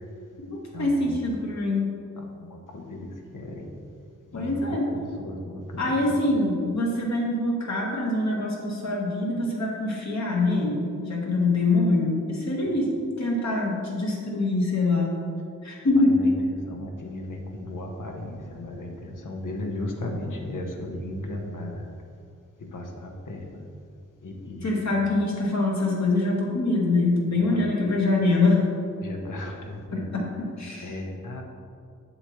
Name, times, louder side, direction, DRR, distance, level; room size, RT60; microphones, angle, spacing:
voice 1, 0.4-2.0 4.3-4.9 5.8-15.1 15.6-16.2 24.6-28.7 29.9-31.0, left 2 dB, 60° left, -2 dB, 1.5 m, -24 dB
voice 2, 2.7-3.1 3.3-3.7 4.3-4.8 5.2-5.8 16.7-21.8 22.7-23.5 24.2-24.9 29.0-30.1 30.8-31.4, left 1 dB, 80° left, 2 dB, 1.1 m, -35 dB
8.0 x 6.9 x 3.1 m, 2.3 s
wide cardioid pair, 120°, 31 cm